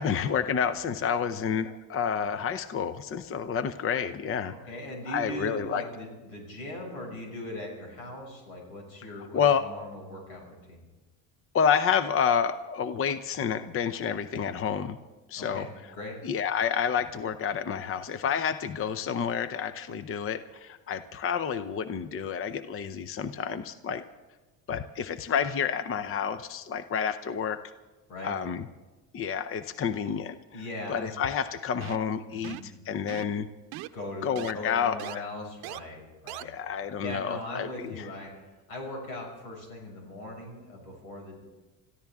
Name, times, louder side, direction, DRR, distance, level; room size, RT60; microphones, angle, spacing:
voice 1, 0.0-4.5 5.1-5.8 9.2-9.7 11.5-15.0 15.3-15.7 16.2-24.0 24.7-27.6 28.2-28.7 29.1-30.6 30.9-33.5 34.2-35.2 36.4-38.1, left 7 dB, 35° left, 12 dB, 0.7 m, -29 dB
voice 2, 4.5-10.8 15.3-15.7 15.9-16.2 28.1-28.3 30.5-31.1 32.3-32.8 33.9-36.5 37.0-38.3 38.7-41.4, left 1 dB, 85° left, 0 dB, 6.2 m, -40 dB
sound 1, 31.8-32.1 32.4-32.7 33.1-33.4 33.7-33.9 34.4-34.5 35.0-35.2 35.6-35.8 36.3-36.4, right 16 dB, 70° right, 0.7 m, -39 dB
25.5 x 14.5 x 3.6 m, 1.2 s
supercardioid pair, 90°, 39 cm